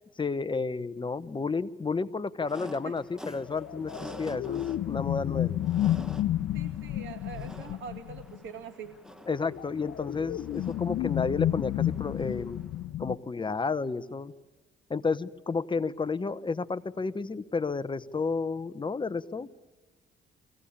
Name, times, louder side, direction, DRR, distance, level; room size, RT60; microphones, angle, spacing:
voice 1, 0.2-5.5 9.3-12.6 13.0-14.3 14.9-19.6, left 4 dB, 25° left, 13 dB, 0.9 m, -31 dB
sound 1, 2.4-12.8, equal, 5° right, 1.5 m, -48 dB
sound 2, 3.3-8.5 9.4-13.2, left 12 dB, 70° left, 0.6 m, -31 dB
voice 2, 6.5-9.0, right 7 dB, 75° right, 3 dB, 2.7 m, -43 dB
23.5 x 16.5 x 8.6 m, 1.3 s
cardioid pair, 90°, 20 cm